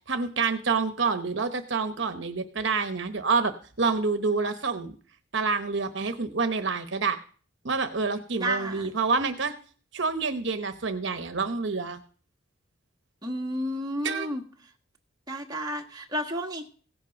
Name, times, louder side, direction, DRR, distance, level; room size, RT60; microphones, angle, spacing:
voice 1, 0.1-3.5 3.8-4.9 5.3-7.2 7.6-9.5 9.9-12.0 14.0-14.3, right 4 dB, 60° right, 9 dB, 0.9 m, -27 dB
voice 2, 8.4-8.9 13.2-14.4 15.3-16.7, equal, 20° right, 1 dB, 1.4 m, -31 dB
16.5 x 8.2 x 5.3 m, 0.42 s
head